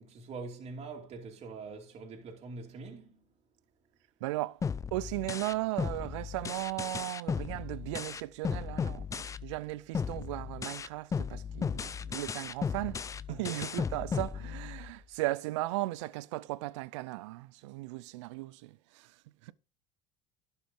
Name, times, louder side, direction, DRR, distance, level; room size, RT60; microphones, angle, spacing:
voice 1, 0.0-3.3 13.3-13.6, right 4 dB, 45° right, 2.5 m, -44 dB
voice 2, 4.2-4.6 4.9-13.0 13.3-19.1 19.4-19.5, right 18 dB, 85° right, 0.5 m, -36 dB
sound 1, 4.6-9.6 9.9-15.0, left 6 dB, 20° left, 0.5 m, -36 dB
11.5 x 5.7 x 3.7 m
supercardioid pair, 100°, 15 cm